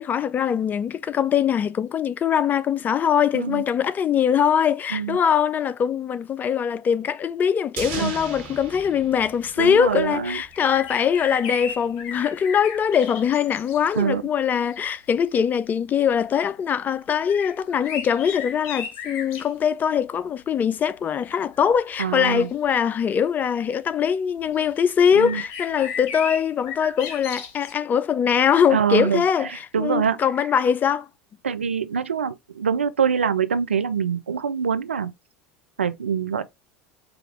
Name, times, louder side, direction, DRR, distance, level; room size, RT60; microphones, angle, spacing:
voice 1, 0.0-31.1, left 8 dB, 30° left, 0.4 m, -22 dB
sound 1, 7.8-10.2 10.4-10.5, right 6 dB, 65° right, 1.3 m, -36 dB
voice 2, 9.6-10.4 13.9-14.2 22.0-22.5 25.1-25.4 28.7-30.2 31.4-35.1 35.8-36.4, right 7 dB, 85° right, 0.4 m, -24 dB
sound 2, 10.5-14.0 14.7-14.9 17.3-19.5 21.5-21.9 22.7-22.8 24.5-24.7 25.1-27.7, left 6 dB, 50° left, 1.1 m, -35 dB
4.9 x 2.4 x 3.2 m
figure-of-eight pair, 80°, 6 cm